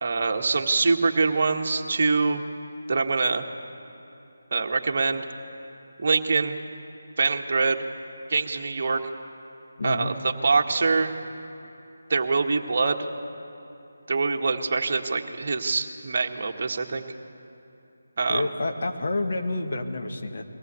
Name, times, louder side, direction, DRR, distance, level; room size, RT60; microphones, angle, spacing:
voice 1, 0.0-2.4 2.9-3.4 4.5-5.2 6.0-6.6 7.2-7.8 8.3-9.1 9.8-11.1 12.1-13.1 14.1-17.1 18.2-18.5, right 4 dB, 45° right, 3 dB, 1.6 m, -24 dB
voice 2, 9.8-10.1 18.3-20.5, left 2 dB, 50° left, 4 dB, 1.9 m, -29 dB
22.5 x 17.5 x 8.4 m, 2.8 s
figure-of-eight pair, 155°, 0 cm